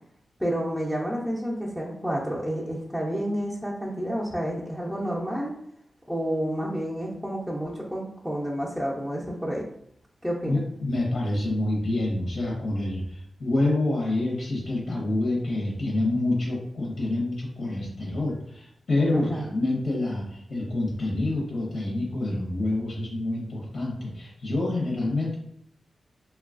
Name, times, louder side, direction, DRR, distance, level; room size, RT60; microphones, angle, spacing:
voice 1, 0.4-5.5 6.1-9.6 10.2-10.6 19.1-19.5, equal, ahead, -5 dB, 0.5 m, -30 dB
voice 2, 10.5-25.4, left 2 dB, 75° left, -3 dB, 0.8 m, -27 dB
2.9 x 2.3 x 2.4 m, 0.68 s
wide cardioid pair, 90°, 0 cm